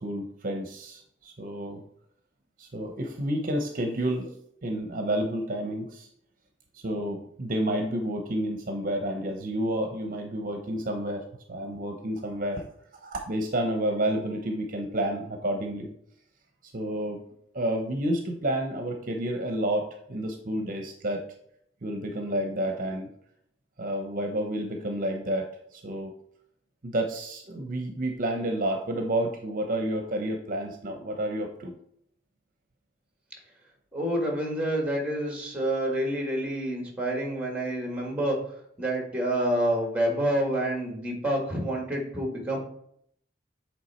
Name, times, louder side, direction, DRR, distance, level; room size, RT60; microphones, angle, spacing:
voice 1, 0.0-1.8 2.6-4.3 4.6-6.1 6.7-12.7 13.0-15.9 16.6-17.2 17.5-21.2 21.8-23.1 23.8-26.1 26.8-31.8, right 1 dB, 50° right, 3 dB, 0.8 m, -30 dB
voice 2, 33.9-38.4 38.8-42.6, right 1 dB, 5° right, 1 dB, 1.7 m, -28 dB
8.1 x 3.4 x 4.2 m, 0.69 s
head